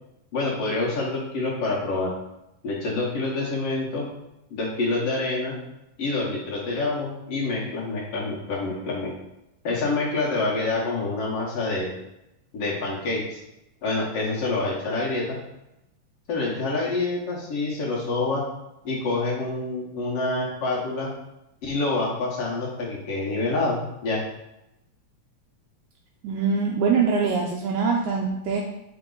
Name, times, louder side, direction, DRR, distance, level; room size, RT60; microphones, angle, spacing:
voice 1, 0.3-2.1 2.6-4.1 4.5-5.6 6.0-9.1 9.6-11.9 12.5-13.4 13.8-15.4 16.3-18.4 18.8-21.1 21.6-24.2, left 3 dB, 60° left, -3 dB, 1.7 m, -27 dB
voice 2, 26.2-28.6, right 5 dB, 80° right, -1 dB, 1.9 m, -23 dB
5.9 x 4.4 x 3.8 m, 0.88 s
omnidirectional pair, 3.6 m